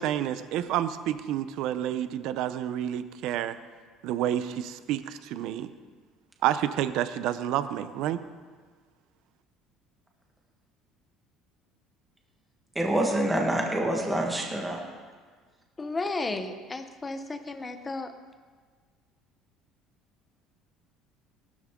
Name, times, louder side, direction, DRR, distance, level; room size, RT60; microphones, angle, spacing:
voice 1, 0.0-3.5 4.0-5.7 6.4-8.2, right 11 dB, 60° right, 0.7 m, -29 dB
voice 2, 12.7-14.8, right 1 dB, 5° right, 1.6 m, -26 dB
voice 3, 15.8-18.1, left 3 dB, 15° left, 0.8 m, -33 dB
18.0 x 12.5 x 3.7 m
cardioid pair, 170°, 0 cm